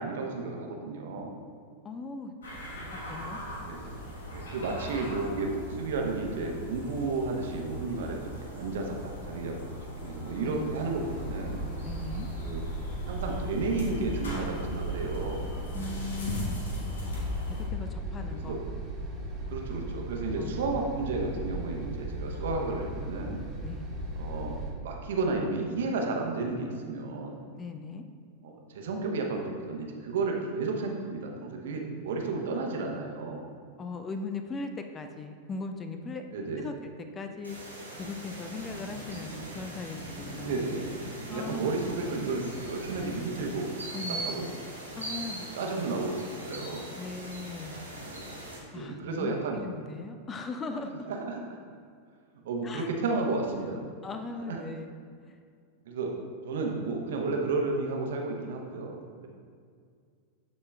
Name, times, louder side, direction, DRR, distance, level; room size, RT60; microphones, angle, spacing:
voice 1, 0.0-1.4 3.6-3.9 4.3-11.6 12.4-12.6 13.1-15.5 18.3-18.6 19.5-23.4 24.2-27.4 28.4-33.5 36.3-36.7 40.4-41.0 41.3-44.5 45.5-46.9 48.7-49.6 51.1-51.6 52.4-53.8 54.5-54.6 55.9-56.1 56.4-59.3, right 3 dB, 60° right, 1 dB, 0.9 m, -32 dB
voice 2, 1.8-2.3 2.9-3.4 10.4-10.7 11.8-12.3 15.7-16.6 17.5-18.6 20.4-20.8 23.6-23.9 27.6-28.0 33.8-36.2 36.6-37.6 38.0-40.5 41.3-41.9 43.9-44.4 45.0-45.5 46.9-47.8 48.7-51.1 52.6-52.9 54.0-54.9 55.3-55.4, left 4 dB, 20° left, 7 dB, 0.4 m, -39 dB
sound 1, 2.4-17.6, equal, 65° left, 1.4 m, -39 dB
sound 2, 10.9-24.7, right 1 dB, 25° right, 1.3 m, -37 dB
sound 3, 37.4-48.6, right 1 dB, 85° right, 1.7 m, -40 dB
12.5 x 4.2 x 2.3 m, 2.1 s
figure-of-eight pair, 90°, 0 cm